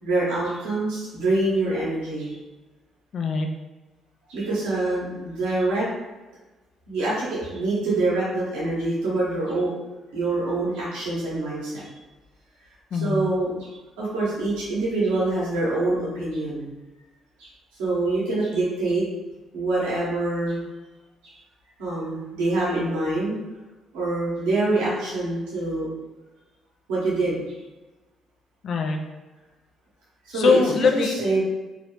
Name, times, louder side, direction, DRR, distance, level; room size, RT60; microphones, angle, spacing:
voice 1, 0.0-2.4 4.3-5.9 6.9-9.7 10.1-11.9 12.9-13.7 14.0-16.7 17.4-17.5 17.8-19.0 19.5-20.6 21.8-23.3 23.9-25.9 26.9-27.4 30.3-30.6 31.0-31.4, right 2 dB, 85° right, -8 dB, 0.9 m, -25 dB
voice 2, 3.1-3.5 12.9-13.2 28.6-29.0 30.3-31.2, left 4 dB, 60° left, 3 dB, 0.4 m, -22 dB
2.6 x 2.1 x 3.0 m, 1.1 s
supercardioid pair, 60°, 0 cm